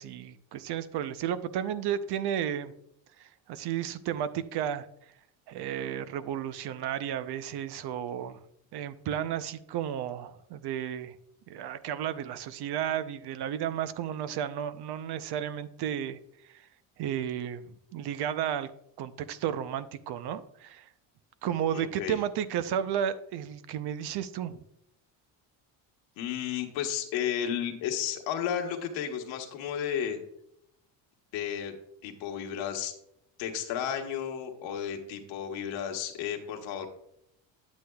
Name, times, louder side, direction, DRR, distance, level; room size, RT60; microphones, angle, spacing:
voice 1, 0.0-2.7 3.2-4.9 5.5-8.4 8.7-11.2 11.5-16.2 17.0-18.7 19.0-20.8 21.4-24.6, right 9 dB, 60° right, 13 dB, 0.7 m, -33 dB
voice 2, 21.7-22.2 26.2-30.2 31.3-31.7 32.0-32.9 33.4-36.9, left 9 dB, 85° left, 4 dB, 1.3 m, -33 dB
9.6 x 8.2 x 2.3 m, 0.76 s
cardioid pair, 110°, 45 cm